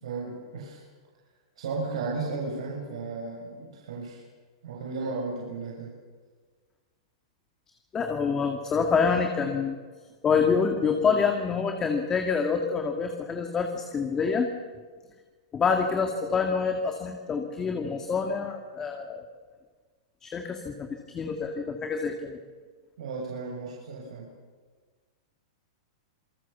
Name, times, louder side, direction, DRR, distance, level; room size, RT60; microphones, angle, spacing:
voice 1, 0.0-0.8 1.6-4.2 4.6-5.9 23.0-24.3, right 3 dB, 80° right, -2 dB, 7.3 m, -34 dB
voice 2, 7.9-9.8 10.2-14.5 15.5-19.2 20.2-22.4, left 5 dB, 15° left, 4 dB, 1.9 m, -27 dB
27.0 x 19.5 x 7.2 m, 1.5 s
supercardioid pair, 155°, 3 cm